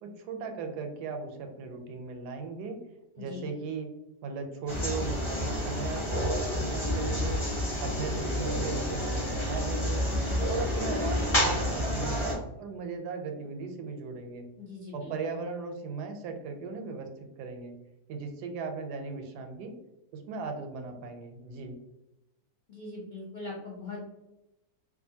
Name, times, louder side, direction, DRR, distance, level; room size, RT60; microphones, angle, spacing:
voice 1, 0.0-2.8 3.2-3.9 4.2-7.4 7.8-10.1 10.5-14.5 14.9-17.7 18.1-19.7 20.1-21.7, right 5 dB, 80° right, 5 dB, 1.1 m, -37 dB
voice 2, 3.2-3.5 10.1-10.5 14.6-15.4 22.7-24.2, left 3 dB, 80° left, -5 dB, 0.4 m, -41 dB
sound 1, 4.7-12.3, left 1 dB, 30° left, 0.6 m, -29 dB
2.7 x 2.4 x 2.6 m, 0.92 s
omnidirectional pair, 1.7 m